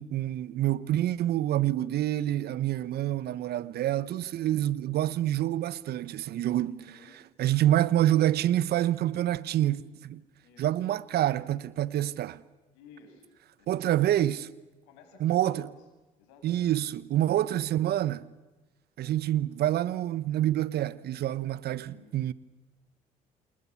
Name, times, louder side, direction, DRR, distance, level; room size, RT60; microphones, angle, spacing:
voice 1, 0.0-6.8 7.4-10.2 10.6-12.4 13.7-14.4 15.2-15.7 16.4-18.3 19.0-22.3, right 13 dB, 60° right, 1.0 m, -27 dB
voice 2, 6.7-7.2 10.4-10.8 12.7-14.1 14.8-15.8 16.2-16.7 21.7-22.2, left 5 dB, 80° left, 6.8 m, -55 dB
29.5 x 28.0 x 7.2 m
hypercardioid pair, 60°, 18 cm